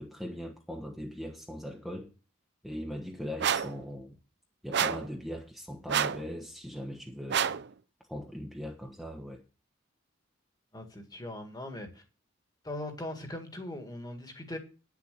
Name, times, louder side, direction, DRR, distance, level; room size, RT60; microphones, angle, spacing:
voice 1, 0.0-2.1 2.6-4.2 4.6-7.4 8.1-9.4, equal, ahead, 1.2 m, -40 dB
sound 1, 3.4-3.8 4.7-5.1 5.9-6.3 7.3-7.7, right 8 dB, 60° right, 0.5 m, -28 dB
voice 2, 10.7-12.0 12.6-14.6, left 1 dB, 20° left, 1.9 m, -40 dB
10.0 x 7.2 x 6.7 m
head